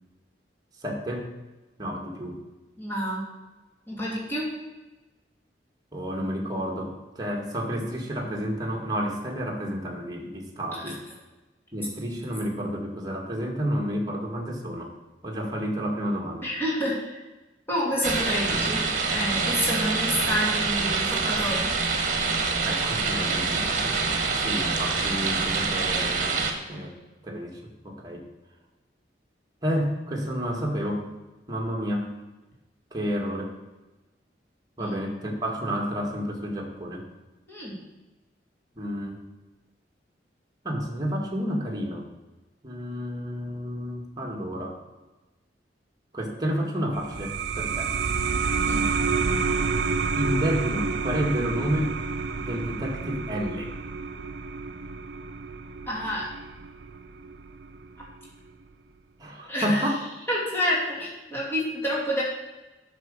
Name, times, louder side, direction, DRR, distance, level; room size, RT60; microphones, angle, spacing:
voice 1, 0.8-1.3 1.8-2.4 5.9-11.0 11.7-14.9 15.2-16.5 22.6-24.0 24.4-27.0 27.2-28.3 29.6-31.1 31.5-32.1 32.9-33.5 34.8-37.0 38.8-39.2 40.6-42.1 42.6-44.8 46.1-48.0 50.2-52.0 52.4-53.7 59.2-60.0, equal, 20° right, 0 dB, 1.9 m, -30 dB
voice 2, 2.8-3.2 3.9-4.5 10.7-10.8 16.4-17.2 17.7-21.7 34.8-35.0 37.5-37.8 48.7-48.9 55.9-56.3 59.5-59.8 60.3-62.2, equal, 15° left, -5 dB, 2.8 m, -28 dB
sound 1, 18.0-26.5, right 4 dB, 45° right, 1.4 m, -26 dB
sound 2, 46.9-58.1, right 5 dB, 65° right, 0.6 m, -29 dB
9.3 x 6.2 x 6.9 m, 1.1 s
head